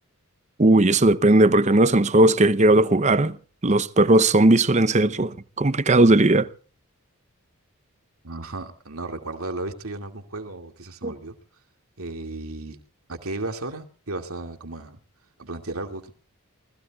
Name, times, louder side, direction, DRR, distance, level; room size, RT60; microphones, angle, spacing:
voice 1, 0.6-3.4 3.6-6.5 11.0-11.1, right 2 dB, 30° right, 0.7 m, -17 dB
voice 2, 8.2-11.3 12.0-12.8 13.1-15.0 15.4-16.1, right 2 dB, 75° right, 2.4 m, -34 dB
29.5 x 20.0 x 2.4 m
head